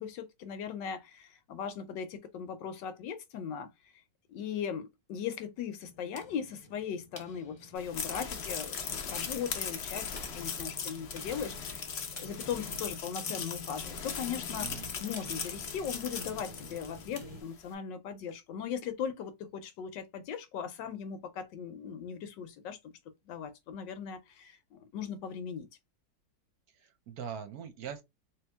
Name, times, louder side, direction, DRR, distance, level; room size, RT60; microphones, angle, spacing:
voice 1, 0.0-3.7 4.3-11.8 12.2-14.7 15.0-22.8 23.3-25.7, left 7 dB, 80° left, 1.4 m, -39 dB
sound 1, 5.8-17.4, left 2 dB, 25° left, 1.0 m, -50 dB
sound 2, 7.8-17.3, left 6 dB, 60° left, 0.7 m, -39 dB
voice 2, 14.6-14.9 26.7-28.0, right 8 dB, 65° right, 1.0 m, -42 dB
3.2 x 2.9 x 3.4 m
omnidirectional pair, 1.9 m